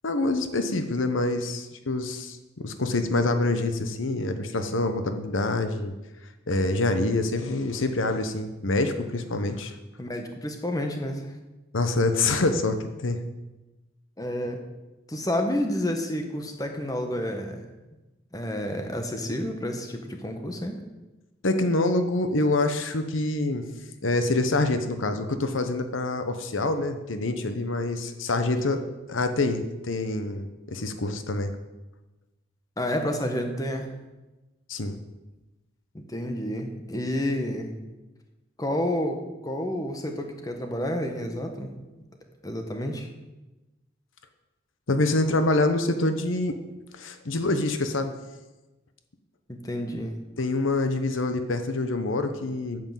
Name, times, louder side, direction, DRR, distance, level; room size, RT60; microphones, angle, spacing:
voice 1, 0.0-5.9 6.5-9.7 11.7-13.2 21.4-23.7 24.0-28.8 29.1-31.6 34.7-35.0 44.9-46.6 46.9-48.1 50.4-52.8, left 2 dB, 85° left, 8 dB, 1.0 m, -26 dB
voice 2, 10.0-11.3 14.2-14.6 15.1-17.7 18.3-20.8 32.8-33.9 35.9-37.7 38.6-41.7 42.4-43.1 49.5-50.2, left 1 dB, 20° left, 4 dB, 1.2 m, -30 dB
9.3 x 8.0 x 7.4 m, 1.1 s
head